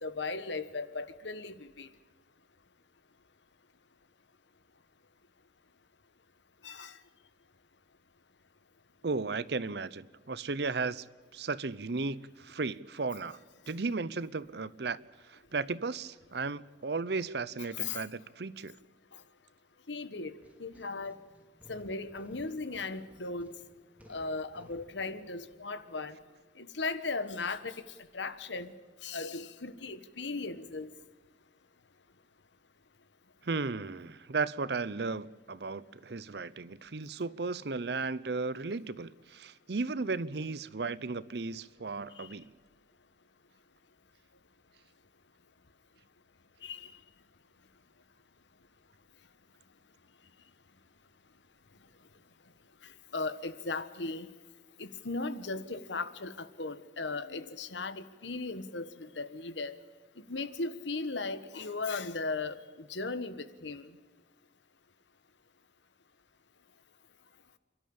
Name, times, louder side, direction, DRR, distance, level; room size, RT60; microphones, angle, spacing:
voice 1, 0.0-1.9 6.6-6.9 17.7-18.0 19.9-20.3 20.6-21.2 21.7-23.5 24.1-26.2 26.6-27.7 28.1-28.7 29.0-30.9 42.2-42.3 46.6-46.9 53.1-54.3 54.8-59.7 60.3-62.6 62.9-63.9, left 3 dB, 85° left, 1.4 m, -37 dB
voice 2, 9.0-11.1 11.3-13.4 13.7-15.0 15.2-18.8 33.4-42.5, right 4 dB, 65° right, 0.8 m, -35 dB
sound 1, 20.0-26.4, equal, 10° right, 2.7 m, -59 dB
28.5 x 13.0 x 8.7 m
head